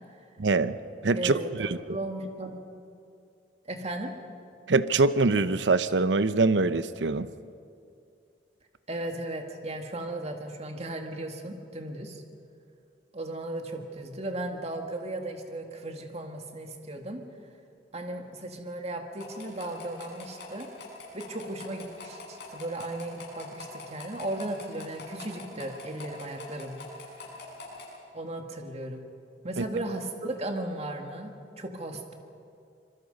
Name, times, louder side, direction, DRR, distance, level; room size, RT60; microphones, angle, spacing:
voice 1, 0.4-0.8 1.0-1.8 4.7-7.3 29.6-29.7, right 3 dB, 90° right, 13 dB, 0.8 m, -24 dB
voice 2, 1.1-2.6 3.7-4.2 8.9-12.2 13.1-17.2 17.9-20.7 21.1-26.8 28.1-29.0 29.4-32.1, right 1 dB, 35° right, 4 dB, 2.0 m, -36 dB
sound 1, 19.2-27.9, left 3 dB, 70° left, 6.9 m, -44 dB
25.5 x 23.0 x 5.4 m, 2.5 s
head